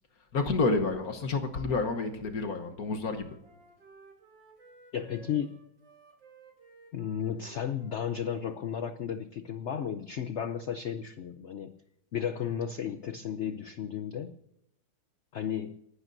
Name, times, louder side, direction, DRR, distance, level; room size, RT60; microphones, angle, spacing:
voice 1, 0.3-3.4, left 3 dB, 55° left, 5 dB, 1.5 m, -29 dB
Wind instrument woodwind instrument, 2.6-9.0, right 2 dB, 80° right, 3.6 m, -57 dB
voice 2, 4.9-5.5 6.9-11.8 12.1-14.3 15.3-15.8, left 8 dB, 85° left, 10 dB, 0.6 m, -34 dB
28.0 x 12.0 x 2.7 m, 0.83 s
omnidirectional pair, 2.0 m